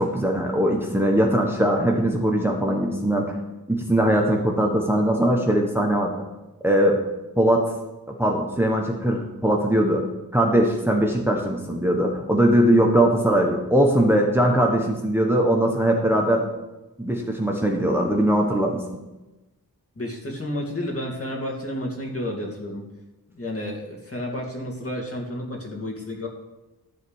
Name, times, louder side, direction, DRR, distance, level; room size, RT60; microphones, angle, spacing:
voice 1, 0.0-3.3 3.7-6.3 6.6-7.0 7.4-7.7 8.2-10.0 10.3-16.5 17.0-19.0, right 1 dB, 5° right, 1 dB, 1.3 m, -21 dB
voice 2, 20.0-22.8 23.3-26.3, left 1 dB, 40° left, -2 dB, 2.5 m, -31 dB
12.5 x 4.1 x 8.1 m, 1.0 s
wide cardioid pair, 70°, 35 cm